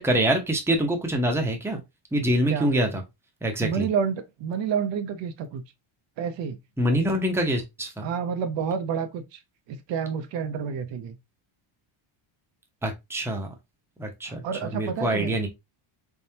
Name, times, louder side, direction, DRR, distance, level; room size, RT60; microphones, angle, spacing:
voice 1, 0.0-1.8 2.1-3.0 3.4-3.9 6.8-8.1 12.8-13.5 14.0-15.5, right 1 dB, 5° right, 0.8 m, -25 dB
voice 2, 3.6-5.6 6.2-6.6 8.0-9.4 9.7-11.2 14.2-15.3, right 7 dB, 60° right, 0.8 m, -29 dB
4.0 x 3.6 x 2.8 m
cardioid pair, 140°, 49 cm